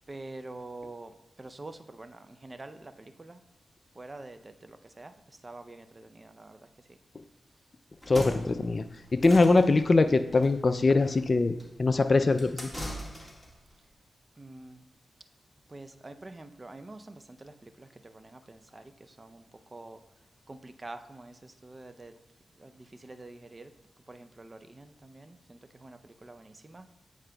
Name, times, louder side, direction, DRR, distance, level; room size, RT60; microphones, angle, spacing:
voice 1, 0.1-1.1 1.4-2.2 2.4-2.8 3.2-3.3 4.0-4.4 5.0-5.1 5.4-5.8 6.2-6.5 14.4-14.7 15.7-17.1 18.7-18.8 19.2-19.3 19.7-20.0 20.5-21.3 21.6-22.1 23.0-23.7 24.1-24.8 25.1-25.2 25.8-26.8, right 2 dB, 35° right, 9 dB, 0.5 m, -45 dB
sound 1, 7.9-13.6, equal, 5° left, 1.7 m, -41 dB
voice 2, 8.1-8.8 9.1-12.7, left 3 dB, 45° left, 10 dB, 0.4 m, -23 dB
9.2 x 4.7 x 2.3 m, 1.1 s
supercardioid pair, 45°, 0 cm